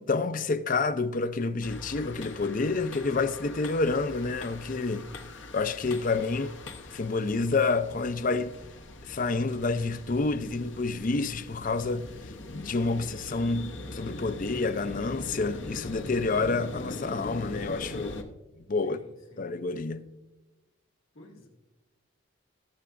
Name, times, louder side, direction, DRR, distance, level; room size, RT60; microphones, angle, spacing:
voice 1, 0.0-5.1 5.5-6.5 6.9-8.6 9.0-12.1 12.5-18.2 18.6-19.0 19.4-20.1, left 3 dB, 40° left, 0.5 m, -28 dB
sound 1, 1.6-18.2, left 2 dB, 65° left, 0.9 m, -42 dB
voice 2, 18.8-19.6 21.1-21.5, left 1 dB, 80° left, 2.2 m, -53 dB
20.0 x 6.8 x 2.5 m
head